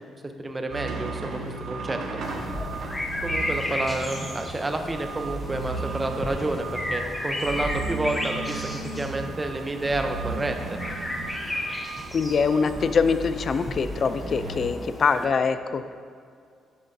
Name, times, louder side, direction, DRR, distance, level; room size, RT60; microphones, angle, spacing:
voice 1, 0.4-2.0 2.3-2.5 2.8-2.9 3.2-8.6 9.0-10.8, right 2 dB, 20° right, 5 dB, 0.6 m, -29 dB
sound 1, 0.7-14.7, right 3 dB, 60° right, 0.9 m, -36 dB
sound 2, 2.2-15.3, left 1 dB, 10° left, 0.8 m, -34 dB
voice 2, 12.1-15.9, left 5 dB, 50° left, 11 dB, 0.3 m, -24 dB
7.6 x 6.8 x 2.6 m, 2.2 s
cardioid pair, 90°, 0 cm